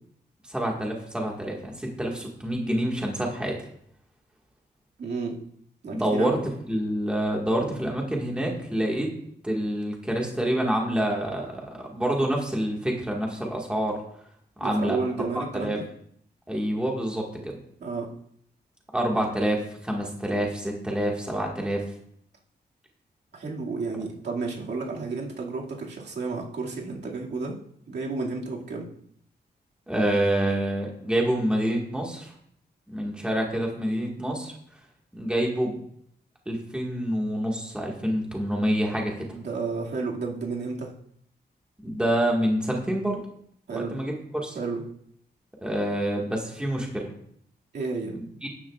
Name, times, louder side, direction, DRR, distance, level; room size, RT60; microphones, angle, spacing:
voice 1, 0.5-3.6 5.9-6.3 6.7-9.1 9.4-14.0 14.6-15.0 15.3-15.8 16.5-17.6 18.9-21.8 29.9-32.3 32.9-34.5 35.1-35.8 36.5-39.3 41.8-43.2 43.7-44.6 45.6-47.1 48.1-48.5, right 1 dB, 5° right, -1 dB, 1.8 m, -27 dB
voice 2, 5.0-5.4 5.8-6.3 14.6-15.8 17.8-18.1 23.3-27.5 27.9-28.9 39.3-40.9 43.7-44.0 44.5-44.8 47.7-48.1, right 4 dB, 80° right, -3 dB, 2.2 m, -31 dB
13.5 x 10.0 x 2.4 m, 0.67 s
wide cardioid pair, 170°, 18 cm